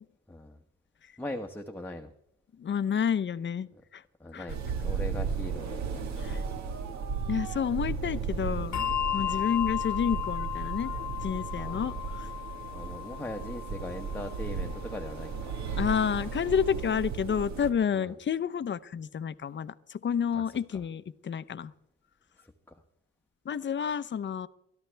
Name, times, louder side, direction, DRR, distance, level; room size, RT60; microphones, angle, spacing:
voice 1, 0.3-0.6 1.2-2.1 4.2-6.6 9.2-9.4 11.6-12.0 12.7-15.5 17.9-18.1 20.3-20.8 22.4-22.5, left 1 dB, 5° left, 3 dB, 1.1 m, -41 dB
voice 2, 2.6-4.0 4.3-4.5 6.2-6.4 7.3-10.9 11.2-12.3 15.8-21.7 23.4-24.5, left 7 dB, 40° left, 15 dB, 0.7 m, -30 dB
sound 1, 4.5-17.7, right 5 dB, 65° right, 1.8 m, -35 dB
Bell, 8.7-15.6, left 11 dB, 70° left, 1.2 m, -35 dB
23.0 x 13.5 x 3.4 m, 0.75 s
cardioid pair, 90°, 30 cm